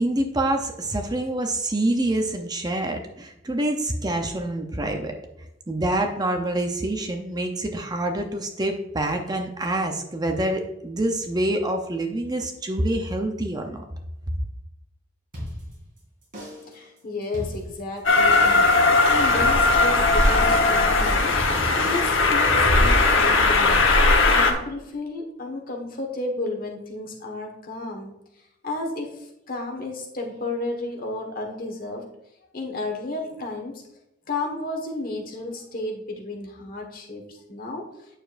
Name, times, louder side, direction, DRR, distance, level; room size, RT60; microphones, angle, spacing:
voice 1, 0.0-5.1 5.7-13.8, right 1 dB, 20° right, 4 dB, 0.6 m, -26 dB
sound 1, 15.3-16.0 16.3-16.8 17.2-18.0 18.3-18.8 19.3-20.0 20.3-20.8 21.3-23.3, equal, 45° right, 2.9 m, -36 dB
voice 2, 16.7-21.4 21.8-23.9 24.2-28.2 28.6-32.0 32.5-33.8 34.3-37.9, left 2 dB, 50° left, 1 dB, 1.4 m, -32 dB
Train, 18.0-24.5, left 3 dB, 85° left, 1.1 m, -18 dB
8.9 x 6.9 x 2.6 m, 0.86 s
head